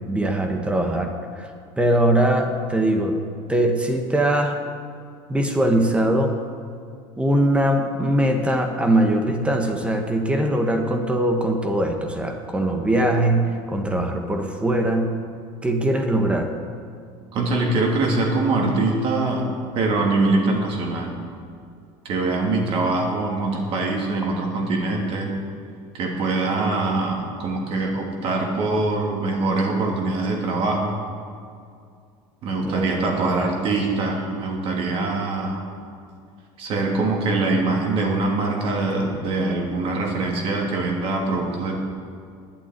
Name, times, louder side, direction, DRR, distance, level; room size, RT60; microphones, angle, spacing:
voice 1, 0.0-1.5 1.8-3.2 3.5-4.6 5.3-6.4 7.2-15.1 15.6-16.5 32.6-33.0 33.3-33.5, right 1 dB, 10° right, 4 dB, 1.2 m, -21 dB
voice 2, 17.3-19.4 19.7-21.1 22.0-25.4 25.9-31.0 32.4-35.6 36.6-41.8, right 3 dB, 50° right, 0 dB, 2.7 m, -23 dB
11.0 x 8.8 x 9.2 m, 2.3 s
cardioid pair, 150°, 13 cm